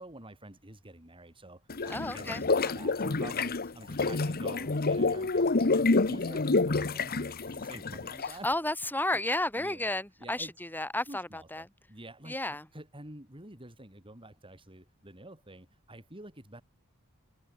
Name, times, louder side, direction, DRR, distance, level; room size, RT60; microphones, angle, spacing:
voice 1, 0.0-8.5 9.5-9.9 10.2-10.5 11.1-16.6, right 1 dB, 25° right, 6.5 m, -48 dB
sound 1, 1.7-8.5, left 3 dB, 45° left, 1.0 m, -28 dB
voice 2, 1.9-2.7 8.3-11.7 12.3-12.7, left 1 dB, 10° left, 7.2 m, -33 dB
head